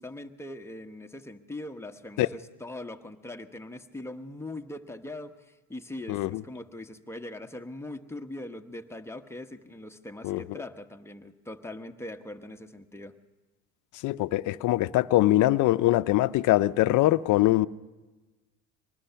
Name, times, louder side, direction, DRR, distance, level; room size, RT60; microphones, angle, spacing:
voice 1, 0.0-13.1, left 1 dB, 5° left, 1.0 m, -41 dB
voice 2, 6.1-6.4 10.2-10.6 14.0-17.7, left 16 dB, 55° left, 0.6 m, -23 dB
24.5 x 20.0 x 5.7 m
supercardioid pair, 95°, 36 cm